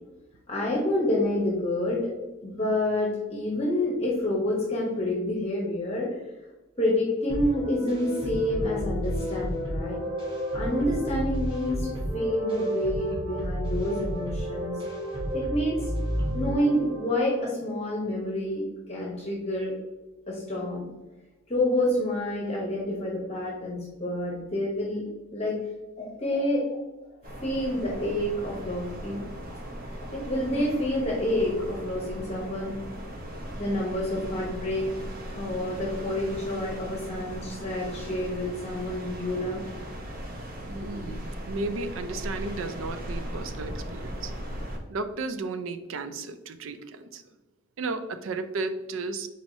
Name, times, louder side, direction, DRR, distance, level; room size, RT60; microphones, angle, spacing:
voice 1, 0.5-2.1 2.4-6.1 6.8-10.0 10.5-14.8 15.3-15.9 16.3-19.7 20.3-20.9 21.5-25.0 25.3-25.6 26.0-26.8 27.4-29.2 29.5-29.6 30.0-32.7 33.6-34.9 35.3-39.6 40.7-40.9, left 1 dB, 30° left, -2 dB, 0.9 m, -28 dB
sound 1, 7.3-17.4, equal, 25° right, 1.1 m, -31 dB
sound 2, 27.2-44.8, equal, 45° right, 0.8 m, -38 dB
voice 2, 40.7-44.3 44.9-47.2 47.8-49.3, right 3 dB, 70° right, 10 dB, 0.4 m, -34 dB
4.7 x 4.2 x 2.6 m, 1.1 s
head